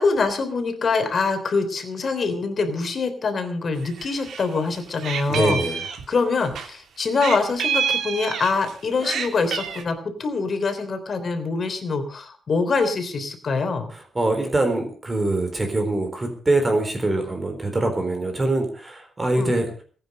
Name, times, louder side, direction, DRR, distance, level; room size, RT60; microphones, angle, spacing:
voice 1, 0.0-5.6 6.1-13.9 19.4-19.5, left 4 dB, 40° left, 7 dB, 3.4 m, -24 dB
Meow, 3.8-4.5 4.7-6.7 7.2-8.7 9.0-9.8, right 7 dB, 80° right, 2.8 m, -27 dB
voice 2, 5.3-5.9 13.9-19.8, right 2 dB, 20° right, 5 dB, 3.9 m, -23 dB
20.5 x 9.4 x 6.7 m, 0.43 s
wide cardioid pair, 145°, 0 cm